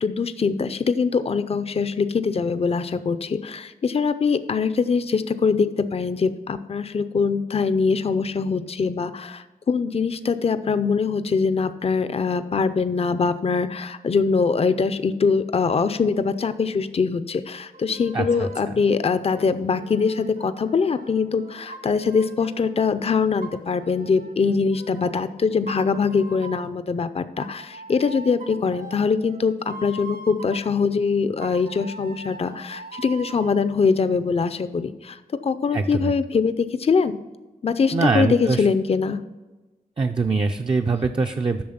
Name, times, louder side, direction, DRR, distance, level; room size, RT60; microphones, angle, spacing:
voice 1, 0.0-37.2 37.6-39.2, left 5 dB, 40° left, 12 dB, 0.5 m, -23 dB
sound 1, 17.7-18.7 19.3-22.7 23.4-25.3 25.7-26.7 27.4-30.7 31.4-33.6, right 2 dB, 75° right, 2.0 m, -41 dB
voice 2, 18.1-18.7 35.7-36.1 37.9-38.7 40.0-41.6, right 4 dB, 30° right, 4 dB, 0.4 m, -23 dB
8.6 x 6.3 x 5.6 m, 1.2 s
wide cardioid pair, 95°, 15 cm